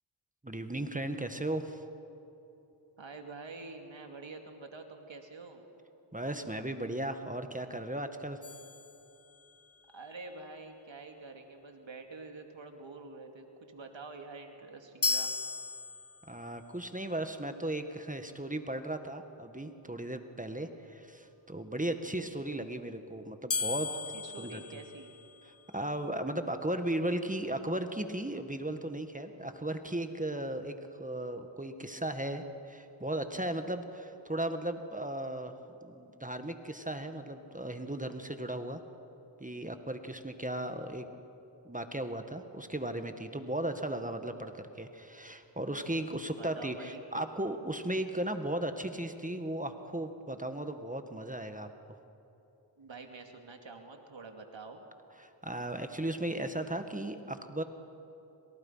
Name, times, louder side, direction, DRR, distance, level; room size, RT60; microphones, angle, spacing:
voice 1, 0.4-1.8 6.1-8.4 16.3-23.9 24.2-24.6 25.4-38.8 39.4-41.1 41.6-52.0 55.2-57.6, right 1 dB, 15° right, 7 dB, 1.8 m, -36 dB
voice 2, 3.0-5.6 9.9-15.3 23.9-25.1 46.4-47.0 52.8-54.8, right 3 dB, 75° right, 4 dB, 2.5 m, -47 dB
sound 1, 8.4-9.7 15.0-16.5 23.5-25.6, left 4 dB, 30° left, 0.8 m, -36 dB
27.5 x 27.0 x 5.8 m, 3.0 s
cardioid pair, 45°, 46 cm